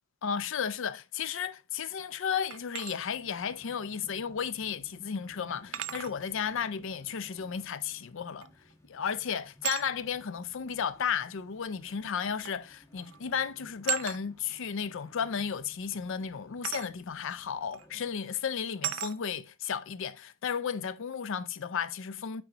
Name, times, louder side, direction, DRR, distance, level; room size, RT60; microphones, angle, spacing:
voice 1, 0.2-8.5 8.9-22.4, left 7 dB, 65° left, 0.5 m, -34 dB
sound 1, 2.5-3.0 4.5-4.6 5.7-6.2 8.4-8.7 9.6-9.9 11.1-11.2 12.5-12.7 13.0-13.2 13.9-14.2 16.6-16.9 17.7-17.9 18.8-19.2, right 13 dB, 75° right, 0.4 m, -35 dB
sound 2, 3.1-18.2, left 1 dB, 15° left, 1.2 m, -59 dB
7.6 x 4.6 x 2.8 m
head